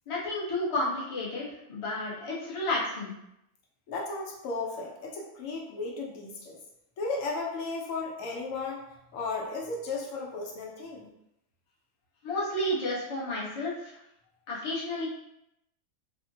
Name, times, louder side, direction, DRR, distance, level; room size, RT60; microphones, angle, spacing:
voice 1, 0.1-3.1 12.2-14.0 14.5-15.1, left 1 dB, 35° left, -5 dB, 0.6 m, -31 dB
voice 2, 3.9-6.6 7.0-11.1, left 3 dB, 75° left, -2 dB, 1.0 m, -35 dB
3.5 x 2.1 x 2.6 m, 0.81 s
omnidirectional pair, 1.4 m